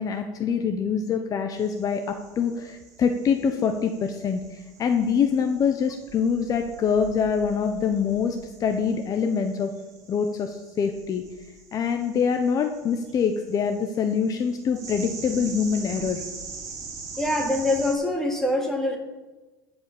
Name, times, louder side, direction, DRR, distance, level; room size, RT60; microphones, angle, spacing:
voice 1, 0.0-9.7 10.1-11.3 11.7-16.2, left 6 dB, 40° left, 5 dB, 0.9 m, -25 dB
sound 1, 1.5-17.9, right 5 dB, 35° right, 4.3 m, -43 dB
voice 2, 17.2-19.0, left 1 dB, 5° left, 0 dB, 2.6 m, -24 dB
15.5 x 5.4 x 7.0 m, 1.2 s
supercardioid pair, 110°, 9 cm